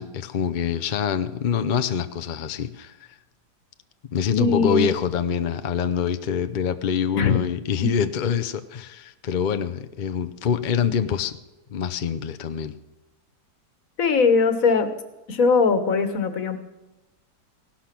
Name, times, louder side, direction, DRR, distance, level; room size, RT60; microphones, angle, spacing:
voice 1, 0.0-3.0 4.1-11.4 11.7-12.7, left 7 dB, 75° left, 9 dB, 0.4 m, -25 dB
voice 2, 4.4-4.9 7.1-7.4 14.0-14.9 15.3-16.6, left 4 dB, 55° left, 10 dB, 1.6 m, -20 dB
16.5 x 12.0 x 6.0 m, 1.0 s
omnidirectional pair, 1.8 m